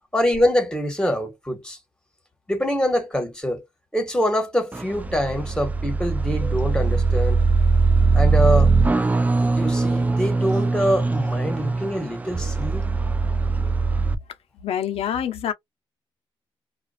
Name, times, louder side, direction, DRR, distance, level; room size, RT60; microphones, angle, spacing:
voice 1, 0.1-1.8 2.5-3.6 3.9-7.4 8.1-8.7 9.6-12.9, equal, 10° left, 1.4 m, -24 dB
sound 1, 4.7-14.2, right 4 dB, 15° right, 0.4 m, -21 dB
voice 2, 14.6-15.5, left 9 dB, 75° left, 0.7 m, -26 dB
2.5 x 2.3 x 2.3 m
cardioid pair, 85°, 10 cm